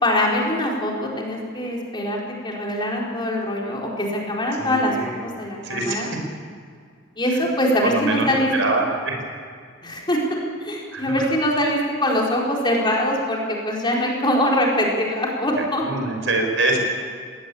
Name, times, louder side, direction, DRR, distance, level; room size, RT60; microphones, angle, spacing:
voice 1, 0.0-2.2 2.4-6.1 7.2-8.8 9.8-10.2 10.6-15.8, left 1 dB, 25° left, -2 dB, 4.6 m, -23 dB
voice 2, 4.6-5.2 5.6-6.1 7.3-7.4 7.8-8.3 8.5-9.2 10.9-11.2 15.8-16.8, right 2 dB, 70° right, 2 dB, 5.7 m, -24 dB
21.0 x 18.0 x 8.7 m, 2.1 s
head